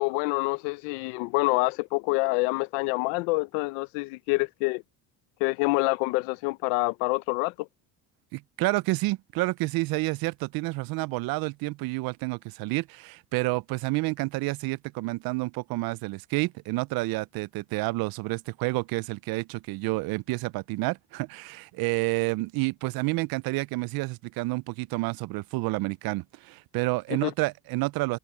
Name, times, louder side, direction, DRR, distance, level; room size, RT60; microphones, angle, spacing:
voice 1, 0.0-4.8 5.4-7.7 27.1-27.3, left 25 dB, 90° left, 0.8 m, -27 dB
voice 2, 8.3-28.2, right 22 dB, 70° right, 0.5 m, -29 dB
supercardioid pair, 90°, 38 cm